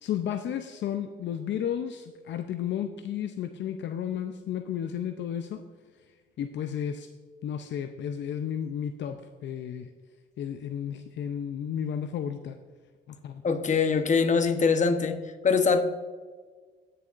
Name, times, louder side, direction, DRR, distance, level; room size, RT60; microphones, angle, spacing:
voice 1, 0.0-5.6 6.4-7.1 7.4-9.9 10.4-12.6 13.1-13.4, left 9 dB, 65° left, 7 dB, 0.6 m, -33 dB
voice 2, 13.4-15.2 15.4-15.8, left 5 dB, 35° left, 7 dB, 1.0 m, -23 dB
15.0 x 6.8 x 2.5 m, 1.5 s
cardioid pair, 90°, 20 cm